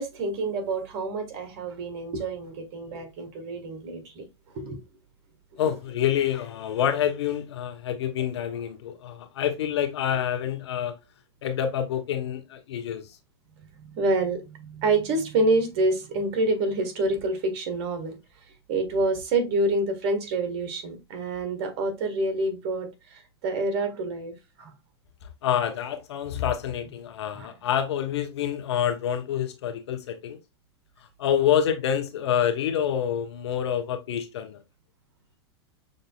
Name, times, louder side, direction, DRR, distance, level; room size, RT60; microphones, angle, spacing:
voice 1, 0.0-4.2 4.5-4.8 5.6-5.7 13.8-18.2 18.7-24.3 24.6-24.7 27.3-27.5, right 2 dB, 50° right, 1.5 m, -27 dB
voice 2, 5.6-10.9 11.4-13.1 25.4-30.4 31.2-34.6, left 9 dB, 75° left, 1.0 m, -27 dB
6.4 x 2.7 x 2.3 m
hypercardioid pair, 115°, 14 cm